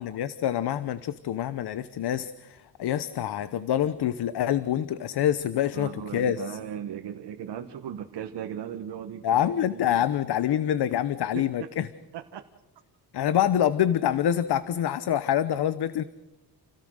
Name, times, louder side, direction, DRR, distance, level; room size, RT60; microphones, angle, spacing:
voice 1, 0.0-6.6 9.2-11.9 13.1-16.0, left 10 dB, 75° left, 14 dB, 1.0 m, -26 dB
voice 2, 5.7-10.1 11.3-11.4 12.1-12.4, right 9 dB, 80° right, 5 dB, 1.5 m, -37 dB
29.0 x 17.5 x 6.5 m, 1.1 s
wide cardioid pair, 135°, 40 cm